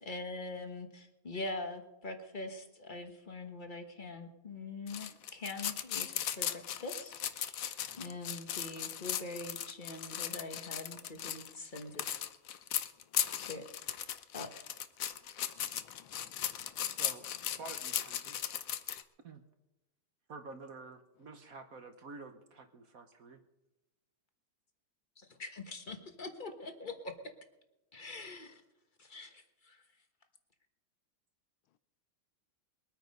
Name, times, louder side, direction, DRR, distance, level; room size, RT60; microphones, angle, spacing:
voice 1, 0.0-6.5 6.8-7.1 8.0-12.0 13.5-13.6 14.3-14.5 25.4-27.1 27.9-28.6 29.0-29.8, left 2 dB, 30° left, 6 dB, 1.2 m, -43 dB
sound 1, 4.9-19.0, left 10 dB, 60° left, 0.9 m, -37 dB
voice 2, 15.6-17.0, left 12 dB, 90° left, 15 dB, 1.5 m, -60 dB
voice 3, 17.6-18.4 19.2-19.4 20.3-23.4, right 3 dB, 50° right, 7 dB, 1.2 m, -49 dB
22.0 x 9.1 x 5.3 m, 0.98 s
omnidirectional pair, 2.2 m